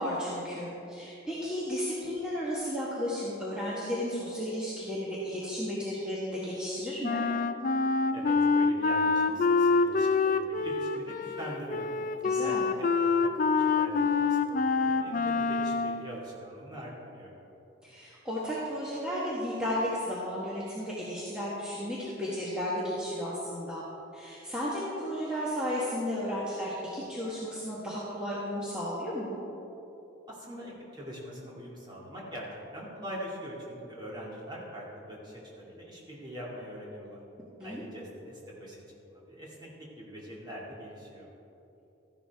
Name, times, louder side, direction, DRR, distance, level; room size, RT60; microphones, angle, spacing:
voice 1, 0.0-7.2 12.2-12.7 17.8-23.8 24.1-29.4 37.6-37.8, equal, 5° right, -8 dB, 1.4 m, -33 dB
Wind instrument woodwind instrument, 7.0-16.0, left 4 dB, 40° left, 0.3 m, -26 dB
voice 2, 8.1-11.9 12.2-17.3 30.3-32.5 32.7-37.2 37.6-41.3, equal, 20° right, -5 dB, 2.3 m, -43 dB
14.0 x 11.5 x 3.5 m, 2.9 s
head